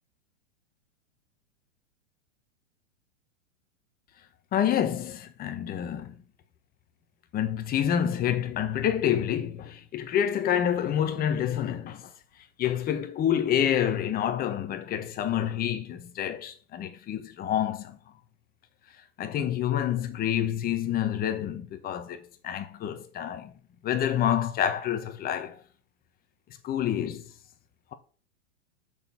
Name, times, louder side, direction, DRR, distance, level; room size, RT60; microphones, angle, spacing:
voice 1, 4.5-6.2 7.3-12.1 12.6-18.0 19.2-23.5 23.8-25.6 26.6-27.2, left 10 dB, 25° left, 1.3 m, -28 dB
6.9 x 6.4 x 7.1 m
hypercardioid pair, 135°, 37 cm